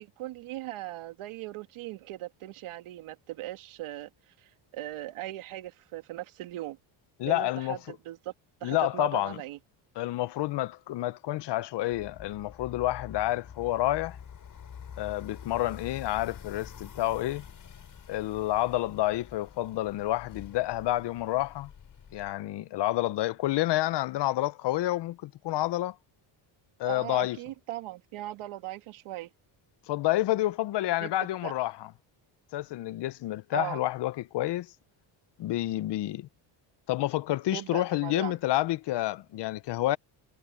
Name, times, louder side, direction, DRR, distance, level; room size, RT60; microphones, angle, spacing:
voice 1, 0.0-4.1 4.4-6.8 7.2-8.3 8.6-9.6 26.8-29.3 31.0-31.1 31.4-31.5 33.5-33.8 37.5-38.4, right 16 dB, 75° right, 2.5 m, -39 dB
voice 2, 7.2-7.8 8.6-9.4 10.0-14.2 15.0-17.4 18.1-21.7 22.1-26.0 26.8-27.4 29.9-31.9 32.5-34.7 35.4-36.3 36.9-40.0, left 15 dB, 55° left, 0.7 m, -29 dB
sound 1, 11.9-22.3, left 7 dB, 40° left, 6.2 m, -47 dB
cardioid pair, 120°, 49 cm